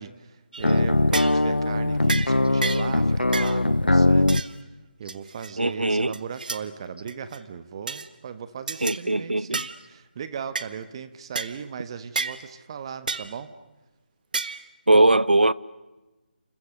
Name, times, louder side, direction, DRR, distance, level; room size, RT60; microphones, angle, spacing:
voice 1, 0.0-4.4 5.0-13.5, right 7 dB, 30° right, 1.3 m, -37 dB
sound 1, 0.5-0.7 1.1-1.4 2.1-2.3 2.6-2.9 3.3-3.6 4.3-4.5 5.1-5.5 6.1-6.6 7.1-7.4 7.9-8.1 8.7-9.0 9.5-9.8 10.5-10.7 11.3-11.5 12.2-12.4 13.1-13.3 14.3-14.7, right 4 dB, 55° right, 1.4 m, -30 dB
sound 2, 0.6-4.4, left 2 dB, 90° left, 0.8 m, -21 dB
voice 2, 5.6-6.1 8.8-9.6 14.9-15.5, right 2 dB, 90° right, 0.9 m, -20 dB
29.0 x 28.0 x 6.7 m
figure-of-eight pair, 155°, 5 cm